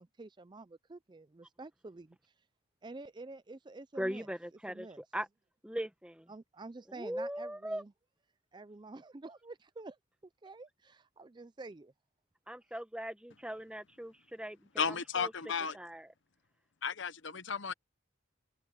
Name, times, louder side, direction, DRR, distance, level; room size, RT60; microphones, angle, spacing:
voice 1, 0.0-2.3 2.8-4.3 4.7-5.0 6.3-7.9 8.5-11.9, right 3 dB, 20° right, 0.4 m, -49 dB
voice 2, 4.0-4.9 5.1-5.3 5.6-6.3 6.9-7.8 12.5-14.6 14.9-15.3 15.7-16.1, equal, 5° right, 1.1 m, -39 dB
voice 3, 14.8-15.8 16.8-17.7, left 6 dB, 60° left, 0.9 m, -34 dB
head